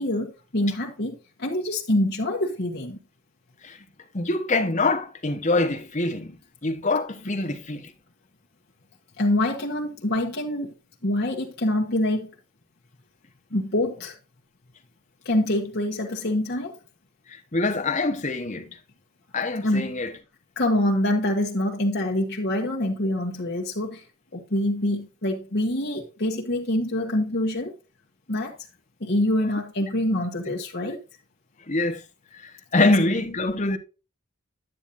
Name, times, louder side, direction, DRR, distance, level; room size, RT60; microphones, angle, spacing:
voice 1, 0.0-3.0 9.2-10.7 11.0-12.3 13.5-14.2 15.2-16.8 19.6-19.9 20.6-24.0 24.3-27.7 28.3-28.5 29.0-31.0 32.8-32.9, left 1 dB, 50° left, 1.4 m, -25 dB
voice 2, 4.1-6.4 6.6-7.9 17.3-18.8 19.3-20.1 31.7-32.0 32.3-33.8, left 2 dB, 35° left, 1.1 m, -24 dB
10.0 x 9.1 x 2.6 m
head